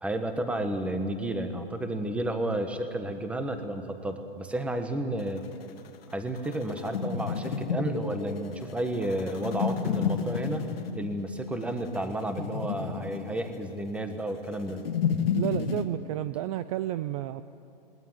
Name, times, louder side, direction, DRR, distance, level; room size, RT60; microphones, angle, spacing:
voice 1, 0.0-5.4 6.1-10.6 10.9-14.8, right 1 dB, 5° right, 7 dB, 1.3 m, -32 dB
sound 1, 5.2-15.8, left 7 dB, 80° left, 2.0 m, -32 dB
voice 2, 15.3-17.4, right 13 dB, 35° right, 13 dB, 0.5 m, -31 dB
20.0 x 18.5 x 9.5 m, 2.5 s
hypercardioid pair, 150°, 30 cm